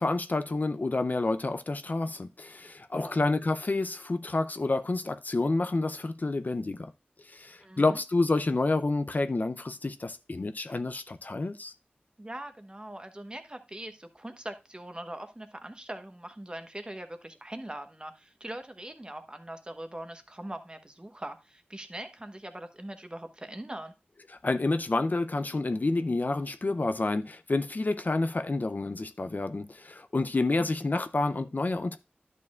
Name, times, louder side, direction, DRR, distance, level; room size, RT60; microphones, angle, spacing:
voice 1, 0.0-6.9 7.2-11.7 24.4-32.0, left 2 dB, 50° left, 0.5 m, -29 dB
voice 2, 7.6-8.0 12.2-23.9 30.5-30.7, right 1 dB, 25° right, 1.1 m, -42 dB
11.0 x 6.4 x 2.4 m
wide cardioid pair, 50°, 4 cm